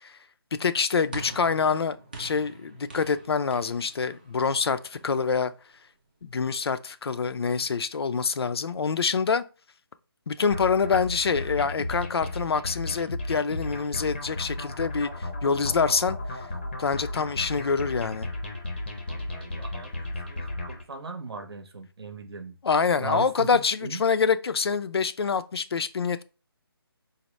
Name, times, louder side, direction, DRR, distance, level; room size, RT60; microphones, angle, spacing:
voice 1, 0.5-5.5 6.2-9.4 10.3-16.4 16.8-18.3 22.6-26.2, left 5 dB, 75° left, 0.4 m, -26 dB
sound 1, 1.1-5.5, right 2 dB, 20° right, 0.5 m, -44 dB
sound 2, 10.5-20.8, left 1 dB, 25° left, 0.6 m, -34 dB
voice 2, 19.1-22.5 23.0-24.0, right 4 dB, 75° right, 0.8 m, -38 dB
4.1 x 2.0 x 3.1 m
hypercardioid pair, 175°, 13 cm